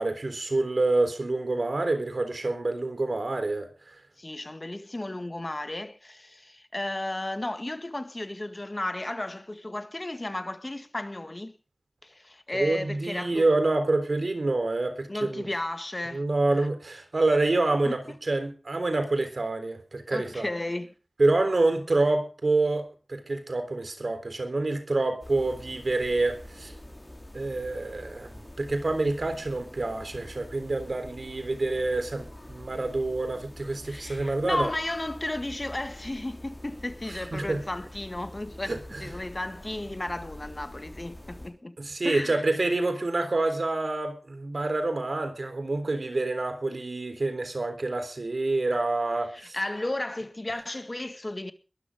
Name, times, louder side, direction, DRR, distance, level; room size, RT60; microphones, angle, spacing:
voice 1, 0.0-3.9 12.5-15.5 16.1-20.5 21.2-26.7 27.3-34.7 37.3-37.6 38.6-39.1 41.8-49.6, right 2 dB, 85° right, 3.6 m, -27 dB
voice 2, 4.2-11.5 12.0-13.5 15.1-16.2 16.5-16.7 17.9-18.0 20.1-20.9 33.8-41.8 42.0-42.4 49.3-51.5, left 1 dB, 40° left, 1.9 m, -34 dB
sound 1, 25.2-41.5, left 1 dB, 25° left, 5.0 m, -45 dB
21.5 x 12.5 x 3.7 m
wide cardioid pair, 60°, 0 cm